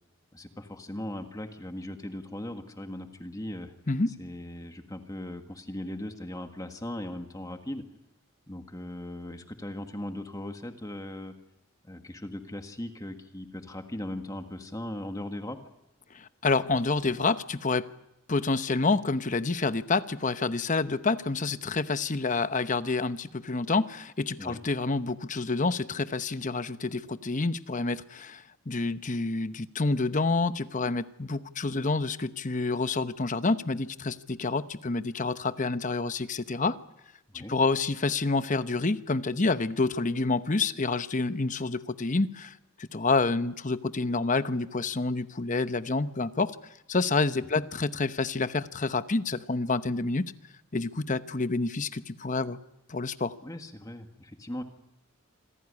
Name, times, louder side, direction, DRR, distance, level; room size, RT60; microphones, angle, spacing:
voice 1, 0.3-3.7 4.2-7.8 8.5-11.3 11.8-15.6 24.4-24.6 37.3-37.6 47.5-47.6 53.4-54.6, left 1 dB, 15° left, 6 dB, 1.6 m, -38 dB
voice 2, 16.1-17.9 18.3-36.8 37.3-46.6 46.9-50.3 50.7-52.6 52.9-53.3, left 3 dB, 35° left, 12 dB, 0.9 m, -28 dB
27.0 x 17.0 x 9.8 m, 0.86 s
head